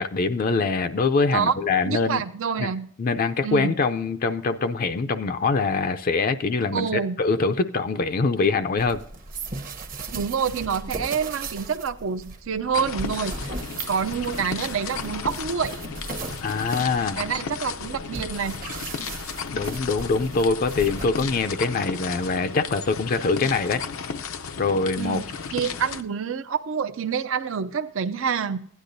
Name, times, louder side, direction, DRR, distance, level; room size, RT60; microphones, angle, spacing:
voice 1, 0.0-2.2 2.6-2.7 3.0-6.9 7.2-9.0 16.4-17.2 19.5-23.8 24.6-25.2, left 4 dB, 45° left, 0.4 m, -24 dB
voice 2, 1.9-2.9 3.4-3.8 6.7-7.2 10.1-13.5 13.9-15.7 17.1-18.6 25.0-25.2 25.5-28.6, right 6 dB, 70° right, 0.5 m, -27 dB
sound 1, 8.8-21.5, right 3 dB, 45° right, 0.9 m, -37 dB
sound 2, 12.7-26.0, left 6 dB, 90° left, 0.6 m, -34 dB
15.5 x 10.0 x 2.6 m
head